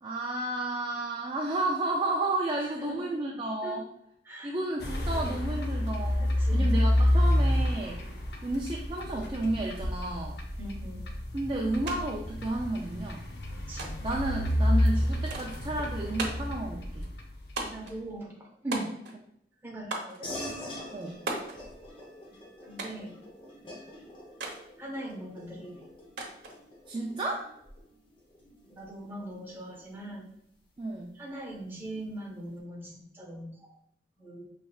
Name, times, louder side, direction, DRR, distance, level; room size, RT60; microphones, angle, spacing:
voice 1, 0.0-3.9 4.4-8.0 8.4-10.4 11.3-13.2 14.0-17.1 20.9-21.2 26.9-27.5 30.8-31.1, right 2 dB, 30° right, -2 dB, 0.4 m, -32 dB
voice 2, 2.8-3.1 3.6-3.8 4.3-4.5 6.4-6.8 10.6-11.1 13.5-13.9 17.6-18.9 19.6-20.3 22.6-23.1 24.8-25.8 28.7-30.3 31.2-33.5 34.2-34.4, right 1 dB, 10° right, -3 dB, 0.9 m, -40 dB
sound 1, 4.8-17.6, left 1 dB, 65° left, 0.7 m, -28 dB
sound 2, 11.9-12.0 12.3-13.0 13.8-14.2 15.3-15.6 16.2-16.6 17.6-18.0 18.7-19.3 19.9-20.2 21.3-21.6 22.8-23.1 24.4-24.6 26.2-26.6, right 3 dB, 80° right, 0.9 m, -36 dB
sound 3, 20.2-30.1, left 1 dB, 30° left, 0.8 m, -45 dB
5.5 x 3.3 x 2.3 m, 0.73 s
head